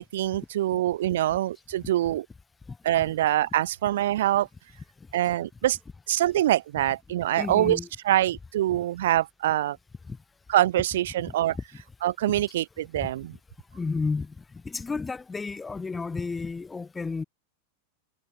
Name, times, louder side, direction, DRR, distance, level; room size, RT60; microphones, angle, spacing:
voice 1, 0.0-2.3 2.8-4.5 5.1-5.8 6.1-7.8 8.1-9.8 10.5-11.6 12.0-13.3, right 13 dB, 55° right, 2.3 m, -24 dB
voice 2, 2.7-3.1 7.4-7.9 10.1-10.2 11.2-11.3 12.3-12.4 13.0-13.1 13.7-17.2, left 4 dB, 10° left, 2.5 m, -32 dB
figure-of-eight pair, 90°, 0 cm